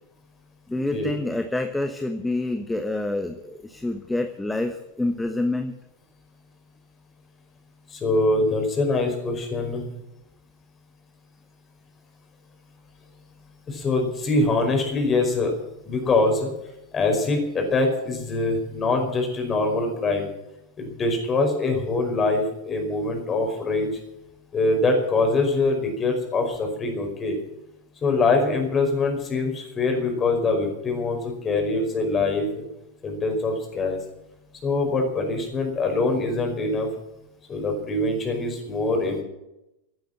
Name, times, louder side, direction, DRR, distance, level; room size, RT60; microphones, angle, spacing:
voice 1, 0.7-5.7 16.0-16.2, left 2 dB, 5° left, 7 dB, 1.2 m, -27 dB
voice 2, 7.9-9.8 13.7-15.5 15.9-16.5 16.9-20.3 20.8-23.9 24.5-27.4 28.0-32.6 33.0-34.0 34.6-36.9 37.5-39.2, left 3 dB, 20° left, 3 dB, 5.2 m, -24 dB
16.5 x 9.2 x 8.8 m, 0.88 s
figure-of-eight pair, 90°, 0 cm